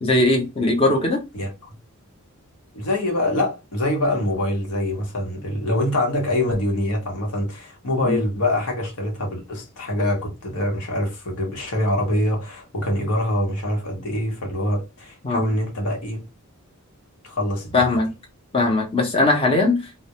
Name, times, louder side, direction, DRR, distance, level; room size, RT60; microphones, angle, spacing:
voice 1, 0.0-1.2 8.0-8.2 15.2-15.4 17.7-18.1 18.5-20.0, left 2 dB, 25° left, 0.6 m, -20 dB
voice 2, 1.3-1.8 2.7-16.3 17.2-18.0, left 1 dB, 85° left, 0.9 m, -24 dB
2.2 x 2.1 x 2.8 m
head